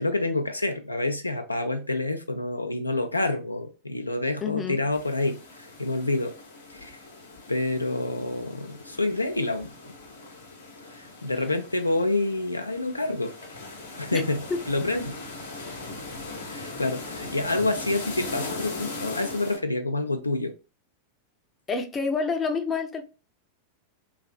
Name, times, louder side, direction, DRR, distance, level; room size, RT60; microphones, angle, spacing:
voice 1, 0.0-6.4 6.7-7.0 7.5-9.9 10.9-13.3 14.0-15.2 16.4-20.5, left 2 dB, 85° left, 0.3 m, -28 dB
voice 2, 4.4-4.8 14.1-14.2 21.7-23.0, left 4 dB, 20° left, 0.5 m, -28 dB
sound 1, 4.9-19.6, left 3 dB, 70° left, 0.7 m, -40 dB
3.0 x 2.5 x 2.3 m
figure-of-eight pair, 90°, 0 cm